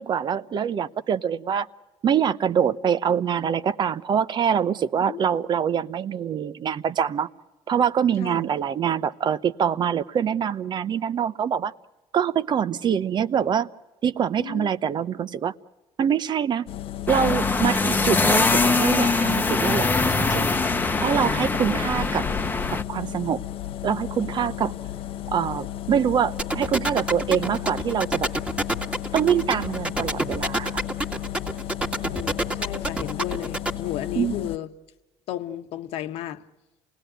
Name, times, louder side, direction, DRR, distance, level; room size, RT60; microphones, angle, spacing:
voice 1, 0.0-1.7 2.0-7.3 7.7-11.7 12.1-13.7 14.0-15.5 16.0-16.7 17.1-19.9 20.2-20.5 21.0-22.2 22.7-23.4 23.8-24.7 25.3-28.3 29.1-30.7 34.2-34.3, right 8 dB, 45° right, 14 dB, 0.8 m, -24 dB
voice 2, 14.4-14.7 32.0-34.7 35.3-36.4, left 12 dB, 75° left, 8 dB, 1.3 m, -33 dB
sound 1, 16.7-34.6, left 13 dB, 60° left, 0.8 m, -34 dB
sound 2, 17.1-22.8, left 3 dB, 15° left, 1.0 m, -22 dB
sound 3, 26.4-33.7, right 1 dB, 10° right, 2.0 m, -26 dB
28.5 x 18.5 x 9.1 m, 1.1 s
cardioid pair, 100°, 10 cm